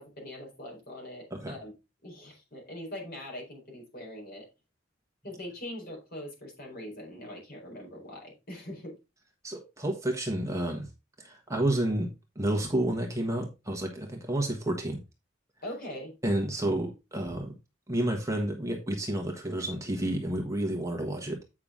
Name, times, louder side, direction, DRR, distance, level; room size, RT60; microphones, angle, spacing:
voice 1, 0.0-1.7 2.0-4.5 5.2-9.0 15.6-16.1, left 1 dB, 50° left, -1 dB, 4.3 m, -42 dB
voice 2, 9.4-10.9 11.2-12.1 12.3-15.0 16.2-17.5 17.9-21.4, right 1 dB, 15° right, 1 dB, 1.3 m, -30 dB
8.7 x 5.8 x 3.7 m, 0.26 s
head